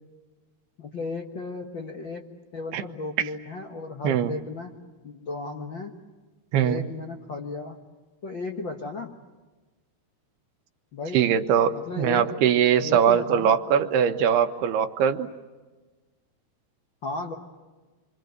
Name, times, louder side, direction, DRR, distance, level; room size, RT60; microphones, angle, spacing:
voice 1, 0.8-4.7 5.0-5.9 6.6-7.8 8.2-9.1 10.9-11.2 11.7-12.4 12.8-13.5 17.0-17.3, left 3 dB, 85° left, 3 dB, 1.0 m, -35 dB
voice 2, 6.5-6.8 11.1-15.3, right 8 dB, 80° right, 8 dB, 2.9 m, -21 dB
27.0 x 25.5 x 8.0 m, 1.3 s
omnidirectional pair, 4.8 m